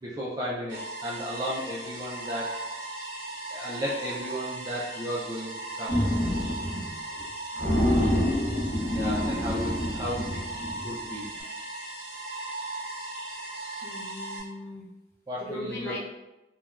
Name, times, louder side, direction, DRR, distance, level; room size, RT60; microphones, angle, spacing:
voice 1, 0.0-2.5 3.5-5.9 8.9-10.4 10.8-11.3 15.3-16.0, equal, 20° right, -6 dB, 0.3 m, -34 dB
sound 1, 0.7-14.4, right 2 dB, 75° right, 0.7 m, -38 dB
sound 2, 5.9-6.9 7.2-7.3 7.6-11.0, left 1 dB, 60° left, 0.8 m, -27 dB
voice 2, 6.6-7.0 13.8-14.9 15.4-16.0, left 2 dB, 15° left, -8 dB, 0.7 m, -39 dB
3.2 x 2.1 x 2.3 m, 0.99 s
head